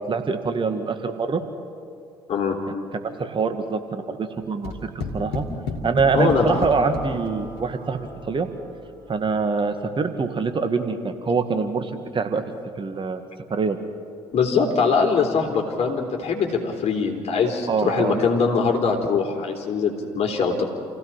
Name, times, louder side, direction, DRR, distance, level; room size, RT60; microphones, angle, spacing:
voice 1, 0.0-1.4 2.9-5.4 5.8-8.5 9.1-12.4 12.8-13.2 13.5-13.8 17.7-18.2, right 4 dB, 40° right, 7 dB, 2.0 m, -24 dB
sound 1, 4.6-7.9, left 3 dB, 80° left, 2.6 m, -32 dB
voice 2, 6.1-6.6 14.3-20.6, left 5 dB, 50° left, 2 dB, 3.8 m, -22 dB
Acoustic guitar, 6.2-9.8, right 4 dB, 60° right, 4.5 m, -41 dB
28.5 x 16.5 x 5.8 m, 2.3 s
hypercardioid pair, 50°, 13 cm